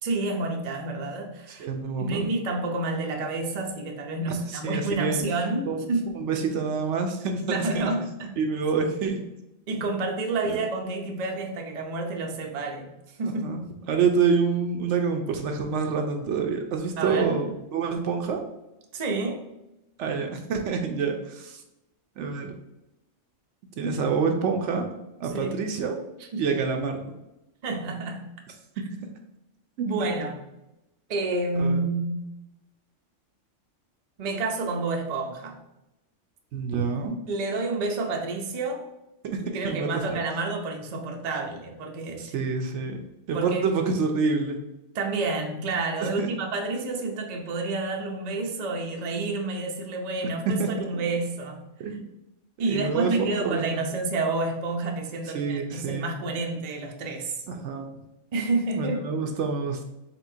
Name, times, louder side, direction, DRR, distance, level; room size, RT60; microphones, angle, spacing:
voice 1, 0.0-1.7 2.0-6.2 7.5-8.3 9.7-13.6 17.0-17.4 18.9-19.5 25.3-25.7 26.3-26.4 27.6-28.3 29.8-30.4 31.1-32.3 34.2-35.6 37.3-38.9 39.5-42.3 43.3-43.6 44.9-51.6 52.6-57.4 58.3-59.0, right 3 dB, 45° right, 2 dB, 0.6 m, -29 dB
voice 2, 1.5-2.3 4.5-5.2 5.7-5.9 6.1-7.9 8.4-9.2 10.4-10.6 13.2-13.6 13.9-18.4 20.0-21.6 22.2-22.5 23.8-24.9 25.2-26.0 26.4-27.1 29.8-29.9 31.6-31.8 36.5-37.2 39.6-40.2 42.2-43.0 43.3-44.6 46.0-46.3 50.6-51.0 51.8-52.1 52.6-53.9 55.3-56.2 57.5-57.9 58.7-59.8, right 5 dB, 75° right, 4 dB, 0.9 m, -27 dB
4.3 x 4.0 x 2.6 m, 0.92 s
omnidirectional pair, 1.3 m